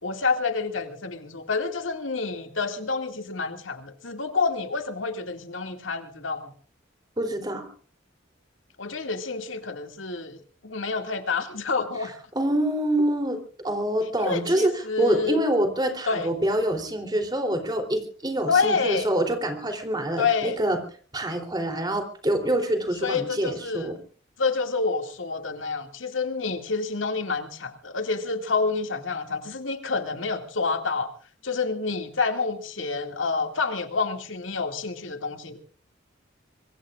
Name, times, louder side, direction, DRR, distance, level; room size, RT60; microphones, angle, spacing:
voice 1, 0.0-6.5 8.8-12.1 14.2-15.4 16.1-16.3 18.5-19.1 20.2-20.6 23.0-23.9 24.4-31.1 31.4-35.6, left 4 dB, 80° left, 6 dB, 2.2 m, -28 dB
voice 2, 7.2-7.7 12.3-13.4 13.6-20.8 21.1-24.0, right 1 dB, 20° right, 5 dB, 3.2 m, -26 dB
25.5 x 22.5 x 2.5 m, 0.42 s
head